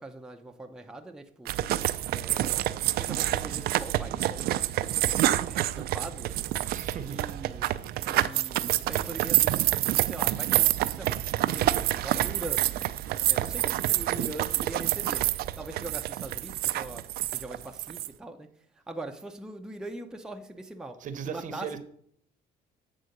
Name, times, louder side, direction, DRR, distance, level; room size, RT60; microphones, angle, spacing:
voice 1, 0.0-1.5 2.1-6.5 7.0-7.7 8.1-9.6 10.0-11.2 11.5-12.7 13.3-17.1 17.3-18.5 18.9-21.8, right 2 dB, 5° right, 0.6 m, -42 dB
sound 1, 1.5-18.1, right 14 dB, 65° right, 0.4 m, -27 dB
voice 2, 6.7-7.2 21.0-21.8, right 7 dB, 50° right, 0.8 m, -37 dB
8.1 x 3.7 x 6.5 m
cardioid pair, 110°, 17 cm